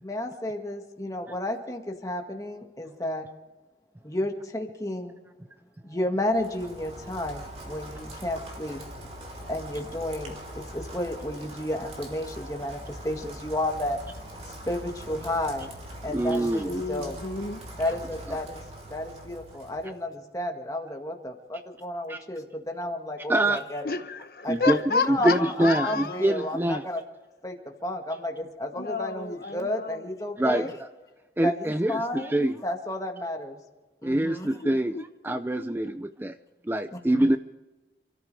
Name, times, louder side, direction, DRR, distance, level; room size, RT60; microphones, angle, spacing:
voice 1, 0.0-3.2 4.0-5.2 5.8-8.8 9.5-14.0 14.6-15.7 16.0-17.2 17.8-18.6 18.9-23.8 24.4-27.0 27.4-30.7 31.4-32.3 32.6-33.6 34.0-34.6 36.9-37.2, left 1 dB, 20° left, 1.8 m, -32 dB
Rain, 6.2-20.0, right 1 dB, 35° right, 3.1 m, -42 dB
voice 2, 16.1-16.8 18.3-18.4 22.1-22.2 23.3-23.6 24.5-24.8 25.1-27.0 30.4-30.9 31.4-32.6 34.0-36.4 36.6-37.4, right 1 dB, 10° right, 0.4 m, -25 dB
voice 3, 16.6-17.6 18.5-18.6 23.8-26.6 28.7-30.1 34.6-35.6, left 4 dB, 55° left, 0.8 m, -32 dB
28.5 x 13.5 x 3.4 m
head